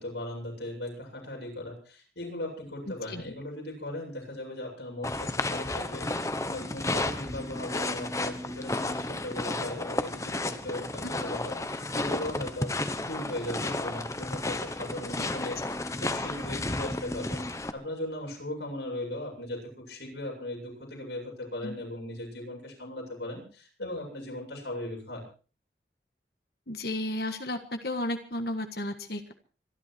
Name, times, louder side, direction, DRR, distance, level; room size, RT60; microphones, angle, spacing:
voice 1, 0.0-6.1 6.4-25.2, left 1 dB, 85° left, 0 dB, 7.9 m, -38 dB
voice 2, 2.9-3.2 15.2-15.3 21.6-21.7 26.7-29.3, left 1 dB, 60° left, 7 dB, 1.6 m, -33 dB
sound 1, 5.0-17.7, left 2 dB, 15° left, 1.0 m, -32 dB
26.0 x 11.5 x 4.5 m, 0.38 s
head